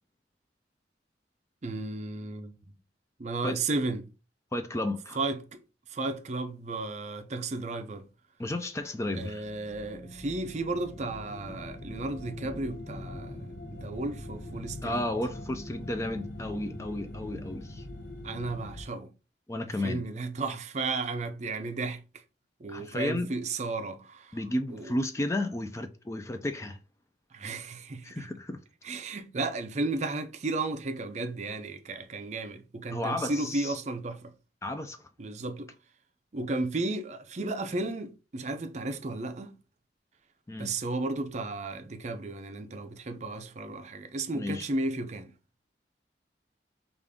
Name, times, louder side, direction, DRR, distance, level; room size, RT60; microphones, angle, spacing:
voice 1, 1.6-2.5 3.2-4.1 5.2-5.6 5.9-8.0 9.1-15.0 18.2-19.1 19.8-22.0 22.6-24.4 24.7-24.9 27.3-28.2 28.8-34.3 35.2-35.7 36.3-39.5 40.6-45.3, right 3 dB, 40° right, 0.5 m, -34 dB
voice 2, 4.5-5.2 8.4-9.4 14.8-17.9 19.5-20.1 22.7-23.3 24.3-26.8 28.0-28.6 32.9-33.8 34.6-35.1 40.5-40.7 44.3-44.7, left 1 dB, 15° left, 0.3 m, -33 dB
sound 1, 9.4-18.8, left 1 dB, 80° left, 0.7 m, -42 dB
5.0 x 2.5 x 3.5 m
head